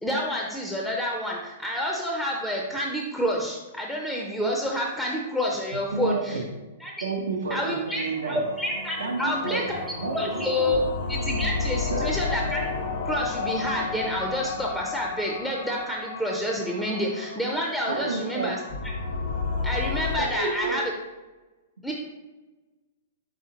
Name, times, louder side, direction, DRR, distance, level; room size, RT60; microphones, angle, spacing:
voice 1, 0.0-6.4 6.8-7.0 7.5-9.8 10.1-10.8 11.1-12.7 13.1-18.6 18.8-18.9 19.6-20.8 21.8-21.9, left 1 dB, 5° left, -1 dB, 0.5 m, -28 dB
voice 2, 5.7-6.5 7.0-8.4 9.0-10.9 11.9-12.1 17.9-18.6 20.2-20.8, right 3 dB, 85° right, 3 dB, 0.6 m, -30 dB
sound 1, 7.9-20.2, left 4 dB, 65° left, 1.1 m, -32 dB
4.9 x 3.6 x 2.8 m, 1.2 s
hypercardioid pair, 125°, 0 cm